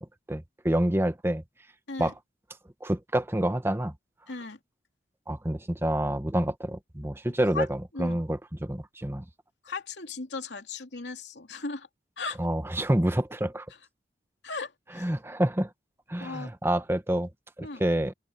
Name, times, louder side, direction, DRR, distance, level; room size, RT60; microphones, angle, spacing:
voice 1, 0.3-1.4 2.0-2.1 2.8-3.9 5.3-9.2 12.4-13.7 15.0-15.7 16.1-17.3 17.6-18.1, right 1 dB, 15° right, 1.0 m, -27 dB
voice 2, 4.3-4.6 7.5-7.7 7.9-8.2 9.6-11.9 12.2-12.4 14.4-15.1 16.2-16.5 17.6-17.8, left 4 dB, 85° left, 2.6 m, -36 dB
open air
head